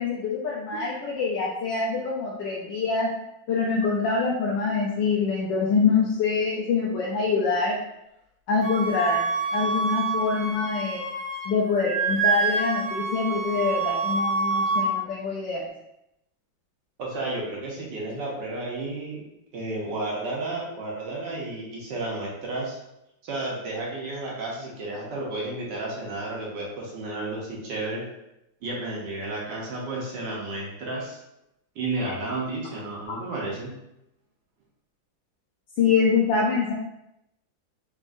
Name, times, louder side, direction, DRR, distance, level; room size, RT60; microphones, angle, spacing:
voice 1, 0.0-3.1 3.5-7.8 8.5-11.0 11.4-15.7 33.1-33.2 35.8-36.7, left 5 dB, 75° left, -4 dB, 1.3 m, -25 dB
Wind instrument woodwind instrument, 8.6-11.5 11.8-14.9, right 4 dB, 40° right, 1.2 m, -27 dB
voice 2, 17.0-19.2 19.5-22.8 23.2-28.0 28.6-31.2 31.7-33.7, right 2 dB, 70° right, -3 dB, 1.4 m, -32 dB
4.0 x 3.7 x 2.5 m, 0.84 s
omnidirectional pair, 2.1 m